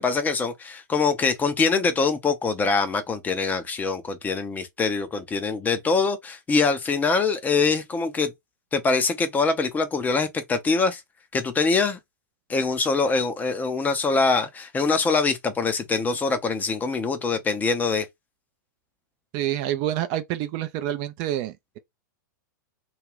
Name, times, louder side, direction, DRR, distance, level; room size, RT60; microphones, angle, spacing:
voice 1, 0.0-8.3 8.7-11.0 11.3-12.0 12.5-18.0, left 4 dB, 15° left, 0.5 m, -24 dB
voice 2, 19.3-21.8, right 12 dB, 40° right, 0.4 m, -28 dB
2.4 x 2.3 x 3.1 m
figure-of-eight pair, 105°, 11 cm